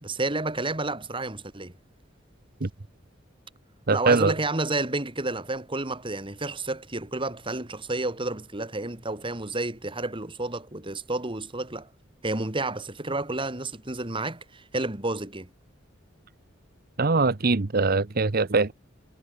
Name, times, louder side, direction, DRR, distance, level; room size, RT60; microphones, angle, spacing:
voice 1, 0.0-1.7 3.9-11.9 12.2-15.5, right 2 dB, 25° right, 2.5 m, -30 dB
voice 2, 3.9-4.3 17.0-18.7, right 3 dB, 50° right, 0.9 m, -22 dB
head